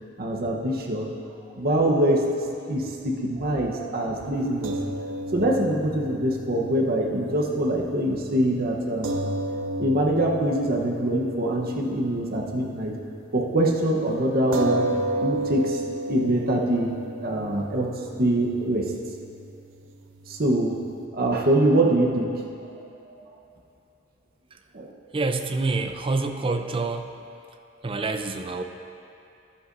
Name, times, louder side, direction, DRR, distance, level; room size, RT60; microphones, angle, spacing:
voice 1, 0.2-1.1 1.6-4.7 5.3-9.2 9.8-12.9 13.3-14.9 15.2-15.8 16.1-16.9 17.2-17.9 18.2-18.9 20.3-20.8 21.1-22.4 23.1-23.2 24.7-24.9, right 1 dB, 50° right, -1 dB, 1.0 m, -24 dB
sound 1, 4.6-13.1 13.5-13.6 14.5-21.1, right 1 dB, 75° right, 0.6 m, -33 dB
voice 2, 25.1-27.1 27.8-28.6, right 3 dB, 25° right, 6 dB, 0.5 m, -27 dB
13.5 x 11.0 x 2.6 m, 2.6 s
head